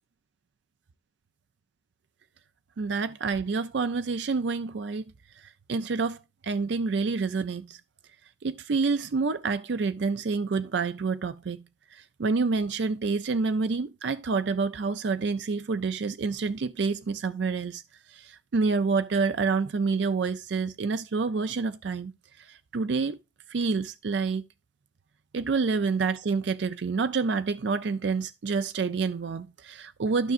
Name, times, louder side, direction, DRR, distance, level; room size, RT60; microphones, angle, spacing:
voice 1, 2.8-5.0 5.4-6.2 6.4-7.8 8.4-11.6 11.9-17.8 18.1-22.1 22.4-23.2 23.5-24.4 25.3-30.3, right 4 dB, 65° right, 0.4 m, -28 dB
12.0 x 6.0 x 2.5 m
head